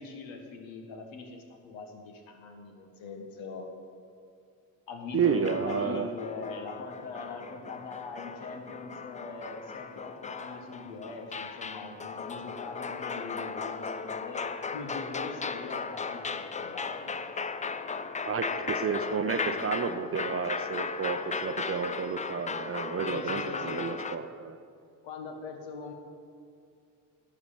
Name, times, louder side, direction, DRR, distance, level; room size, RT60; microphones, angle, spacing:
voice 1, 0.0-3.7 4.9-14.4 14.7-17.3 23.0-23.9 25.0-25.9, left 4 dB, 70° left, 3 dB, 1.5 m, -42 dB
voice 2, 5.1-6.1 18.3-24.6, right 6 dB, 30° right, 9 dB, 0.6 m, -31 dB
sound 1, 5.2-24.2, left 5 dB, 15° left, 0.4 m, -37 dB
11.0 x 5.0 x 7.4 m, 2.4 s
hypercardioid pair, 45°, 47 cm